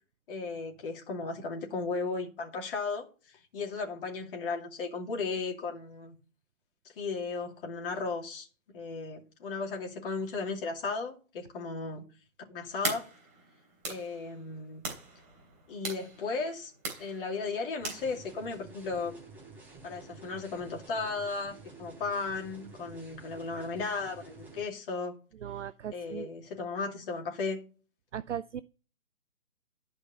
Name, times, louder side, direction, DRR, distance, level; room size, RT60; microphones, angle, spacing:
voice 1, 0.3-6.1 7.0-8.5 8.7-12.0 12.5-13.1 13.9-14.8 15.7-16.7 17.0-19.2 19.8-25.2 25.9-27.6, left 4 dB, 40° left, 2.6 m, -35 dB
sound 1, 12.8-18.6, right 4 dB, 20° right, 3.3 m, -41 dB
sound 2, 17.8-24.6, right 3 dB, 5° right, 3.6 m, -50 dB
voice 2, 25.4-26.3 28.1-28.6, right 9 dB, 55° right, 0.5 m, -37 dB
11.5 x 5.3 x 5.4 m
figure-of-eight pair, 145°, 43 cm